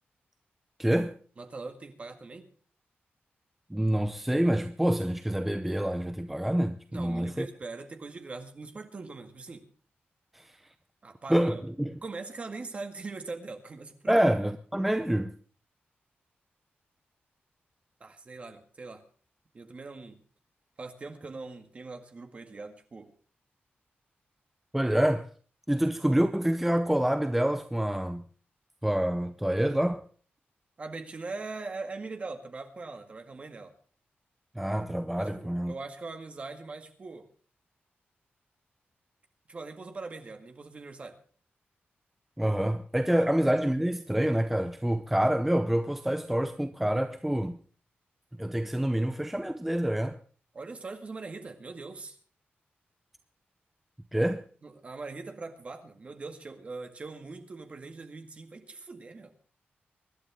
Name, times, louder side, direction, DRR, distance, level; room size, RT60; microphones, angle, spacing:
voice 1, 0.8-1.2 3.7-7.5 10.3-10.5 11.3-12.0 14.1-15.3 24.7-25.3 25.7-28.3 28.8-30.0 34.6-35.7 42.4-47.6 48.4-50.2 54.1-54.5, right 1 dB, 5° right, 0.6 m, -27 dB
voice 2, 1.4-2.5 6.9-9.7 11.0-11.7 12.0-14.3 18.0-19.0 19.5-20.2 20.8-23.1 30.8-33.7 35.2-37.3 39.5-41.2 43.2-43.3 50.5-52.2 54.6-59.3, right 3 dB, 35° right, 1.9 m, -41 dB
24.5 x 11.5 x 3.6 m
wide cardioid pair, 175°, 4 cm